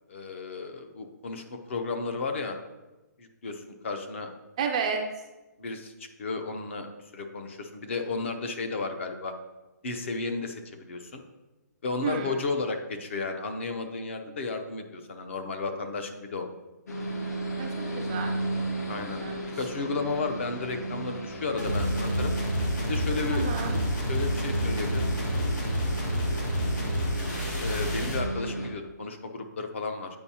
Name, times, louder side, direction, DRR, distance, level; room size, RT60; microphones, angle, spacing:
voice 1, 0.1-2.6 3.2-4.3 5.6-6.9 7.1-9.3 9.8-11.2 11.8-16.5 18.9-19.2 19.6-22.3 22.9-23.4 24.1-25.1 27.6-30.1, left 3 dB, 45° left, 6 dB, 0.7 m, -33 dB
voice 2, 4.6-5.0 12.0-12.4 17.6-18.3 19.2-19.5 23.3-23.8, right 6 dB, 20° right, 3 dB, 0.3 m, -31 dB
sound 1, 16.9-28.7, right 1 dB, 65° left, 1.2 m, -34 dB
sound 2, 21.6-28.3, equal, 85° left, 2.1 m, -29 dB
8.6 x 4.6 x 2.8 m, 1.1 s
hypercardioid pair, 170°, 10 cm